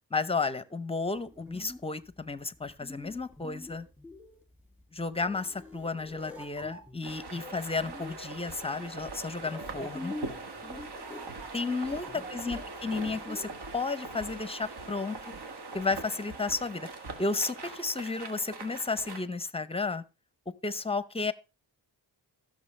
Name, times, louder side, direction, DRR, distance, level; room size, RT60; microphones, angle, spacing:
voice 1, 0.1-3.9 4.9-10.1 11.5-15.2 15.7-16.9 17.2-20.0 20.6-21.3, left 3 dB, 15° left, 0.7 m, -33 dB
sound 1, 1.2-13.7, left 1 dB, 5° right, 2.6 m, -46 dB
sound 2, 7.0-19.2, right 3 dB, 65° right, 1.7 m, -42 dB
15.5 x 6.5 x 3.2 m
cardioid pair, 75°, 42 cm